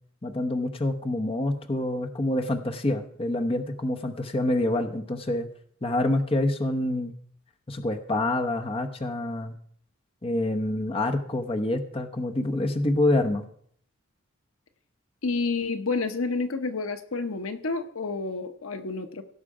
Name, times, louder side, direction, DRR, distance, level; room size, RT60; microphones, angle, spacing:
voice 1, 0.2-5.5 5.8-7.1 7.7-9.5 10.2-13.4, left 1 dB, 25° left, 5 dB, 0.9 m, -27 dB
voice 2, 15.2-19.2, left 3 dB, 70° left, 9 dB, 0.9 m, -29 dB
16.5 x 6.5 x 4.9 m, 0.63 s
head